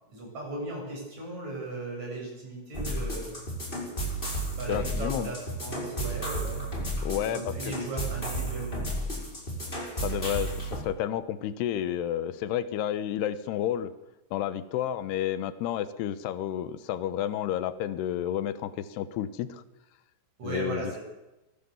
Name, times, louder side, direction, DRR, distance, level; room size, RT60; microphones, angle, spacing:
voice 1, 0.1-3.4 4.5-6.6 7.2-8.9 20.4-21.0, right 2 dB, 40° right, -1 dB, 9.2 m, -37 dB
sound 1, 2.7-10.8, right 1 dB, 10° left, 5.1 m, -33 dB
voice 2, 4.7-5.3 7.0-7.7 10.0-13.9 14.3-19.6 20.4-21.0, left 11 dB, 75° left, 13 dB, 3.0 m, -31 dB
23.5 x 16.5 x 7.3 m, 0.99 s
omnidirectional pair, 5.0 m